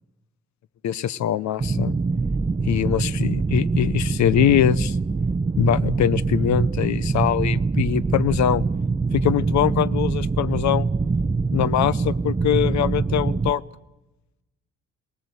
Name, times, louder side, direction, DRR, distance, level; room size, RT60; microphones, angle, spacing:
voice 1, 0.8-1.9 2.6-5.0 5.6-8.6 9.1-10.9 11.5-13.6, left 10 dB, 65° left, 18 dB, 0.7 m, -22 dB
sound 1, 1.6-13.5, right 4 dB, 15° right, 0.6 m, -24 dB
19.0 x 18.5 x 8.1 m, 1.0 s
cardioid pair, 90°, 30 cm